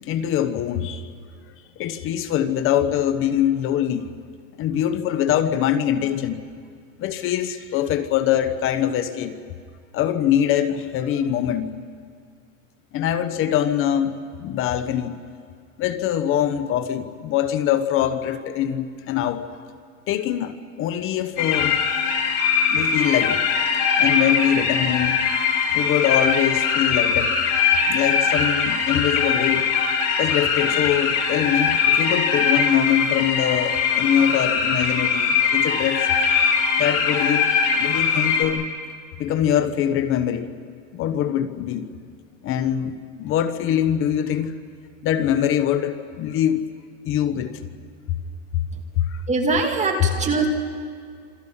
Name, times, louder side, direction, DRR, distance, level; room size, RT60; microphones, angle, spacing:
voice 1, 0.0-1.1 1.8-4.1 4.6-6.4 7.0-9.4 9.9-11.7 12.9-15.2 15.8-19.5 20.1-21.8 22.7-23.4 24.0-25.2 25.7-27.3 27.9-29.7 30.2-36.1 36.8-37.5 37.8-38.7 39.2-40.5 40.9-41.9 42.4-44.5 45.0-46.7 47.0-47.6 49.0-49.2, left 10 dB, 30° left, 11 dB, 1.0 m, -23 dB
sound 1, 21.4-38.4, left 6 dB, 45° left, 5.0 m, -21 dB
voice 2, 49.3-50.5, right 3 dB, 15° right, 3 dB, 2.2 m, -22 dB
28.5 x 27.0 x 5.6 m, 2.1 s
supercardioid pair, 145°, 40 cm